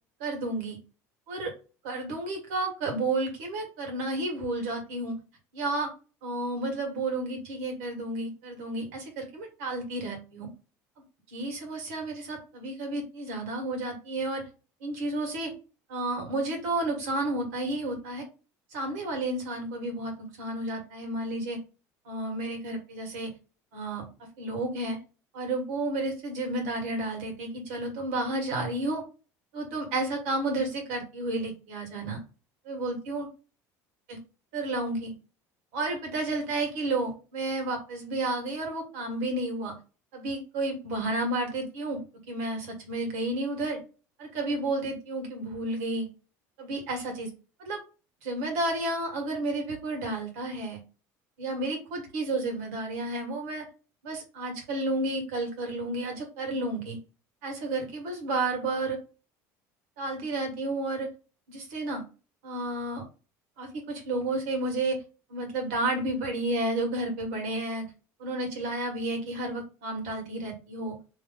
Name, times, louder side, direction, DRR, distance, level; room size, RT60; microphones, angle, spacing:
voice 1, 0.2-0.8 1.3-1.5 1.8-5.2 5.5-5.9 6.2-10.5 11.3-14.4 14.8-15.5 15.9-18.2 18.7-21.6 22.1-23.3 23.7-24.0 24.4-25.0 25.3-29.0 29.5-32.2 32.7-33.3 34.1-34.2 34.5-35.1 35.7-39.7 40.1-42.0 42.3-43.8 44.2-46.1 46.6-47.3 47.6-47.8 48.2-50.8 51.4-53.6 54.0-57.0 57.4-59.0 60.0-61.1 61.5-62.0 62.4-63.0 63.6-65.0 65.3-67.9 68.2-71.0, right 2 dB, 85° right, 3 dB, 1.9 m, -31 dB
3.1 x 3.1 x 3.8 m, 0.33 s
cardioid pair, 120°, 8 cm